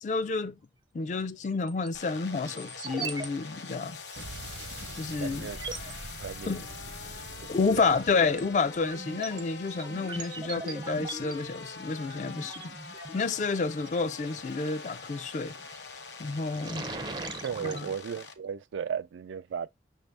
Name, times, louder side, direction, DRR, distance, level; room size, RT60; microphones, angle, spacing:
voice 1, 0.0-0.6 0.9-4.0 5.0-5.5 6.5-6.7 7.5-12.7 13.1-15.5 16.2-16.9 17.6-17.9, left 4 dB, 40° left, 0.3 m, -30 dB
sound 1, 1.4-1.9 2.4-3.3 3.5-3.6 4.1-4.2 4.9-5.0 5.5-5.9 7.2-7.5 8.0-13.9 15.5-15.9 16.2-17.8, right 3 dB, 25° right, 0.4 m, -40 dB
sound 2, 1.9-18.3, left 4 dB, 70° left, 0.8 m, -44 dB
Explosion, 4.2-8.9, right 2 dB, 70° right, 0.8 m, -45 dB
voice 2, 5.2-5.6 6.2-6.5 7.8-7.9 17.4-19.7, right 7 dB, 90° right, 0.3 m, -35 dB
6.1 x 2.6 x 3.3 m
head